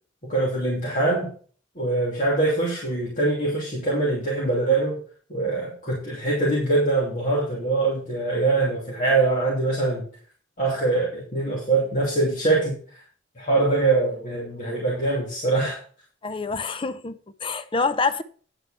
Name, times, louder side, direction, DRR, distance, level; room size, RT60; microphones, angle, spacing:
voice 1, 0.2-1.3 1.7-5.0 5.3-10.0 10.6-12.8 13.4-15.8, right 2 dB, 45° left, 2.9 m, -23 dB
voice 2, 16.2-18.2, left 4 dB, 30° left, 0.7 m, -26 dB
10.0 x 8.0 x 4.3 m
head